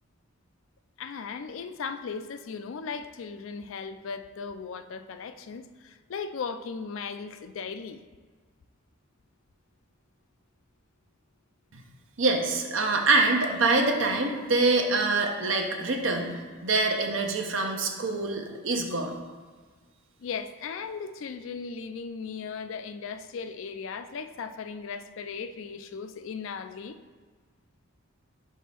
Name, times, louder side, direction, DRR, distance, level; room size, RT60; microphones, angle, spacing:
voice 1, 1.0-8.0 20.2-27.0, left 5 dB, 65° left, 10 dB, 0.4 m, -37 dB
voice 2, 12.2-19.1, right 3 dB, 65° right, 3 dB, 0.8 m, -25 dB
5.1 x 3.6 x 5.7 m, 1.5 s
head